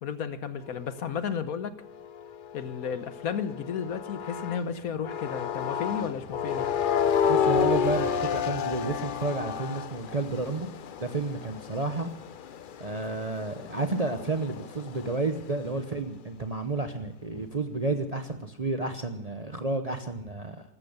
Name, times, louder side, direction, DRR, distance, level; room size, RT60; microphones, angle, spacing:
voice 1, 0.0-1.7 2.5-6.7, left 7 dB, 65° left, 12 dB, 1.3 m, -33 dB
sound 1, 1.8-4.7 5.0-15.5, left 7 dB, 80° left, 0.4 m, -31 dB
voice 2, 7.3-10.7 11.0-12.1 12.8-20.6, right 3 dB, 30° right, 7 dB, 0.8 m, -31 dB
14.0 x 13.5 x 6.6 m, 0.80 s
omnidirectional pair, 1.7 m